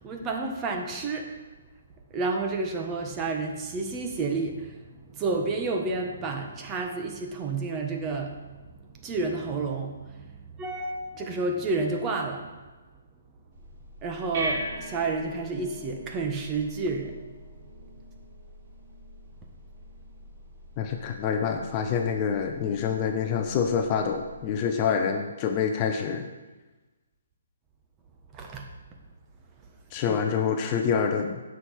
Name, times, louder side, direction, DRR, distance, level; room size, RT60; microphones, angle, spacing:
voice 1, 0.0-1.3 2.1-8.4 9.0-12.5 14.0-17.2 28.3-28.7 30.1-30.2, right 3 dB, 15° right, 2 dB, 1.3 m, -30 dB
sound 1, 13.5-24.5, right 1 dB, 45° right, 3.7 m, -41 dB
voice 2, 20.8-26.3 29.9-31.4, left 6 dB, 25° left, 5 dB, 0.8 m, -26 dB
16.0 x 6.3 x 4.9 m, 1.2 s
hypercardioid pair, 160°, 0 cm